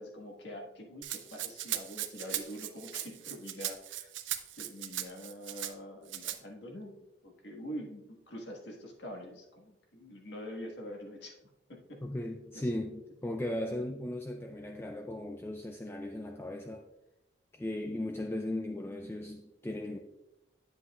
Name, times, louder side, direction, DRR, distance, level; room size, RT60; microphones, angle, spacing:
voice 1, 0.0-4.1 4.6-12.0 12.5-12.7, equal, 70° left, 0 dB, 1.6 m, -45 dB
Rattle (instrument), 1.0-5.7 6.1-6.4, right 12 dB, 90° right, 0.6 m, -38 dB
voice 2, 12.0-16.8 17.5-20.0, left 1 dB, 10° left, 3 dB, 0.3 m, -37 dB
9.7 x 7.7 x 2.4 m, 0.96 s
head